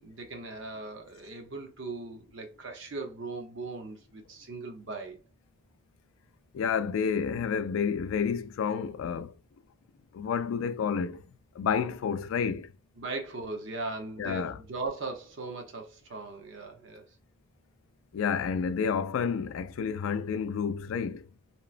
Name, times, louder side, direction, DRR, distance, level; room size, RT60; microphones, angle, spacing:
voice 1, 0.0-5.2 13.0-17.0, right 3 dB, 65° right, 0.7 m, -39 dB
voice 2, 6.5-9.3 10.1-11.2 11.6-12.7 14.2-14.6 18.1-21.3, left 6 dB, 90° left, 0.3 m, -30 dB
2.9 x 2.1 x 2.4 m
head